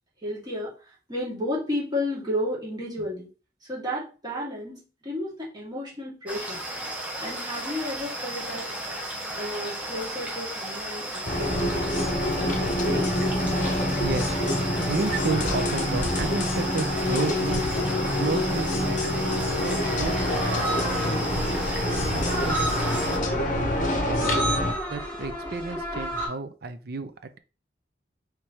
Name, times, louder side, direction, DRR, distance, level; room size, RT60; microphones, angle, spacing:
voice 1, 0.2-0.7 1.1-3.3 3.7-6.6 7.2-8.7 9.3-13.2 13.4-13.5, left 1 dB, 25° right, -5 dB, 2.0 m, -32 dB
sound 1, 6.3-23.2, right 1 dB, 10° right, 1.1 m, -34 dB
sound 2, 11.3-24.7, left 1 dB, 45° left, 0.8 m, -26 dB
voice 2, 14.0-17.7 18.2-19.2 19.6-21.5 21.9-24.4 24.9-27.4, right 4 dB, 60° right, 10 dB, 0.6 m, -33 dB
sound 3, 20.0-26.3, right 1 dB, 15° left, 2.6 m, -32 dB
4.8 x 3.2 x 2.9 m, 0.33 s
head